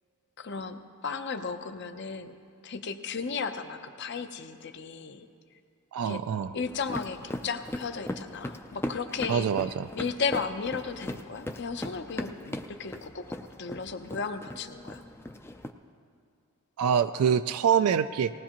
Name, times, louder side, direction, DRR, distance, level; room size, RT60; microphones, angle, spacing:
voice 1, 0.4-2.4 2.6-5.3 6.0-6.2 6.5-13.3 13.6-15.0, left 5 dB, 50° left, 8 dB, 0.7 m, -35 dB
voice 2, 5.9-6.5 9.3-9.9 16.8-18.3, right 7 dB, 80° right, 11 dB, 0.3 m, -25 dB
sound 1, 6.6-15.7, left 1 dB, 10° left, 0.4 m, -39 dB
19.0 x 17.5 x 3.0 m, 2.4 s
head